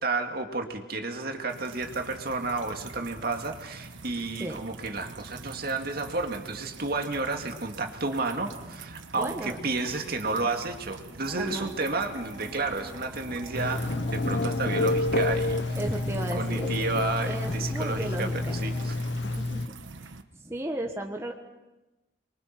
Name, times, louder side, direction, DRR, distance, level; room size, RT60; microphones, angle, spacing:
voice 1, 0.0-15.8 16.3-19.1, right 3 dB, 55° right, 4 dB, 2.2 m, -31 dB
sound 1, 1.5-20.2, right 3 dB, 90° right, 1.2 m, -44 dB
voice 2, 9.1-9.6 10.3-10.5 11.4-11.7 15.8-16.7 17.3-18.5 19.2-19.6 20.0-21.3, right 1 dB, 15° right, 2 dB, 1.4 m, -35 dB
sound 2, 11.3-18.9, left 1 dB, 15° left, 2.7 m, -46 dB
Telephone, 13.5-19.7, left 2 dB, 65° left, 0.7 m, -29 dB
28.0 x 23.0 x 6.0 m, 1.1 s
head